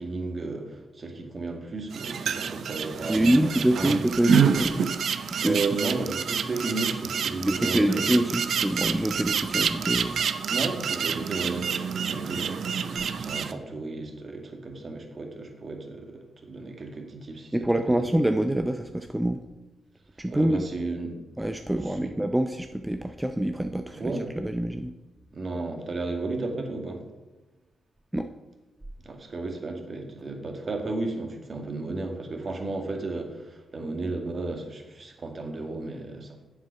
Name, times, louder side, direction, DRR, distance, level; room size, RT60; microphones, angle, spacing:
voice 1, 0.0-3.5 3.8-4.0 5.4-8.2 10.5-17.6 17.9-18.0 20.3-21.1 21.9-22.1 24.0-24.3 25.3-27.0 29.0-36.4, right 3 dB, 45° right, 3 dB, 1.9 m, -33 dB
sound 1, 1.9-13.5, right 7 dB, 65° right, 0.5 m, -28 dB
voice 2, 3.1-4.9 5.4-5.6 7.5-10.2 17.5-19.4 20.2-20.6 21.4-24.9 28.1-28.3, right 1 dB, 10° right, 7 dB, 0.6 m, -25 dB
7.7 x 7.0 x 5.8 m, 1.1 s
hypercardioid pair, 40°, 0 cm